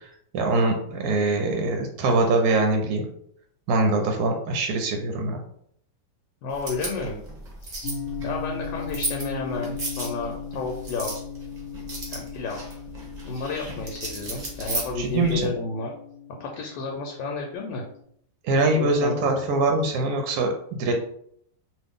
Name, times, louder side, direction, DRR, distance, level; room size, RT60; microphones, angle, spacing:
voice 1, 0.3-3.1 3.7-5.4 15.0-15.5 18.4-20.9, right 2 dB, 70° right, 3 dB, 0.9 m, -23 dB
voice 2, 6.4-7.2 8.2-11.1 12.1-12.6 13.2-15.9 16.4-17.8 18.7-19.3, left 4 dB, 80° left, 1 dB, 1.2 m, -31 dB
picking up coins, 6.5-15.5, right 2 dB, 40° right, 0.6 m, -36 dB
sound 1, 7.8-18.0, left 7 dB, 40° left, 0.8 m, -38 dB
2.8 x 2.5 x 3.5 m, 0.67 s
omnidirectional pair, 2.0 m